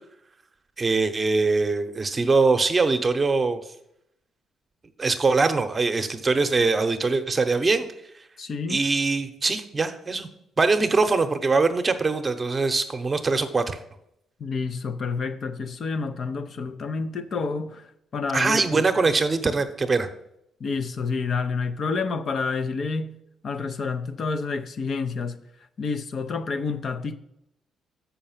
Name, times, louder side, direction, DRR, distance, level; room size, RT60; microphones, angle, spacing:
voice 1, 0.8-3.6 5.0-7.9 8.7-10.3 10.6-13.8 18.3-20.1, right 3 dB, 25° right, 0.9 m, -22 dB
voice 2, 8.4-8.8 14.4-17.9 18.1-18.8 20.6-23.1 23.4-25.4 25.8-27.2, left 4 dB, 50° left, 0.7 m, -29 dB
6.7 x 5.8 x 7.3 m
cardioid pair, 90°, 0 cm